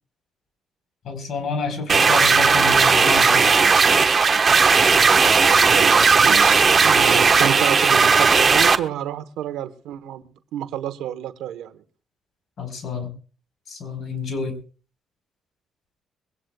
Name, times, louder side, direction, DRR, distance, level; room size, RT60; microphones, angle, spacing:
voice 1, 1.0-3.5 12.6-13.1 13.7-14.5, left 4 dB, 60° left, 9 dB, 4.3 m, -29 dB
sound 1, 1.9-8.8, right 5 dB, 35° right, 1.2 m, -16 dB
voice 2, 5.6-10.2 10.5-11.7, right 11 dB, 90° right, 11 dB, 1.1 m, -29 dB
22.5 x 17.5 x 2.3 m, 0.37 s
cardioid pair, 90°, 0 cm